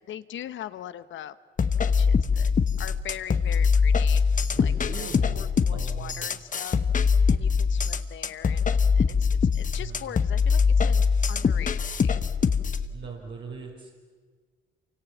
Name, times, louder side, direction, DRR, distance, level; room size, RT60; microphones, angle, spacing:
voice 1, 0.1-1.3 1.8-2.5 2.8-4.2 4.6-6.8 7.3-12.2, left 11 dB, 70° left, 14 dB, 1.1 m, -41 dB
sound 1, 1.6-12.9, left 5 dB, 40° left, 1.2 m, -23 dB
voice 2, 4.5-5.4 5.7-6.4 9.6-10.1 12.9-13.9, right 5 dB, 60° right, -3 dB, 4.8 m, -40 dB
27.5 x 25.0 x 7.4 m, 1.5 s
cardioid pair, 90°, 20 cm